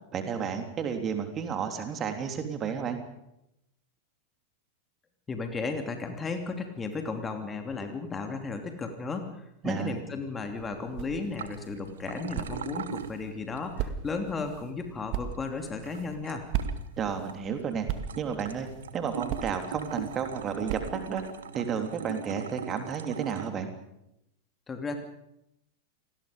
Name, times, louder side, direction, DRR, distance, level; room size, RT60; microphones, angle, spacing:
voice 1, 0.1-3.0 9.6-9.9 17.0-17.9 18.1-18.7 18.9-21.2 21.5-23.7, right 7 dB, 25° right, 6 dB, 3.3 m, -32 dB
voice 2, 5.3-16.4 24.7-25.0, left 4 dB, 15° left, 5 dB, 2.9 m, -34 dB
sound 1, 10.4-21.3, right 9 dB, 45° right, 2.0 m, -39 dB
sound 2, 11.1-23.5, right 7 dB, 65° right, 1.4 m, -41 dB
29.0 x 20.0 x 5.2 m, 0.82 s
figure-of-eight pair, 90°, 0 cm